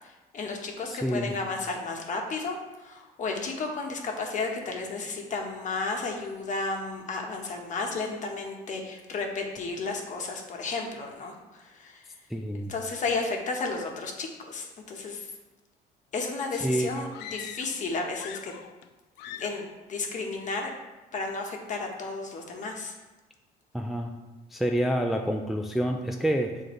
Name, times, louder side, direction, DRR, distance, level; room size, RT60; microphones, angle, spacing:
voice 1, 0.0-12.0 12.7-15.3 16.1-18.5 19.3-20.7 21.1-22.9, left 3 dB, 45° left, 1 dB, 1.2 m, -33 dB
voice 2, 0.9-1.3 12.3-12.7 16.6-16.9 23.7-24.1 24.5-26.6, equal, ahead, 2 dB, 0.4 m, -28 dB
sound 1, 17.1-17.8 18.1-18.9 19.2-19.7, left 10 dB, 85° left, 0.4 m, -42 dB
7.8 x 3.9 x 3.1 m, 1.1 s
cardioid pair, 110°, 17 cm